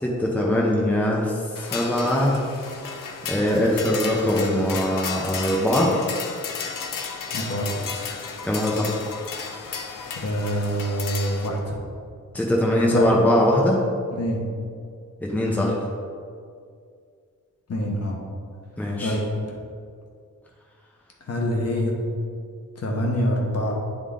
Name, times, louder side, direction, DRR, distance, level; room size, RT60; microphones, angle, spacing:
voice 1, 0.0-1.3 1.6-2.3 3.3-5.9 8.4-8.9 12.3-13.8 15.2-15.8 18.8-19.2, left 1 dB, 5° left, -3 dB, 0.8 m, -21 dB
sound 1, 1.6-11.5, left 6 dB, 85° left, 0.7 m, -34 dB
voice 2, 7.3-8.1 10.2-11.6 12.9-13.0 14.2-14.4 17.7-18.1 19.0-19.2 21.3-21.9 22.8-23.7, equal, 50° left, -1 dB, 1.2 m, -25 dB
9.9 x 3.8 x 3.7 m, 2.2 s
wide cardioid pair, 145°, 32 cm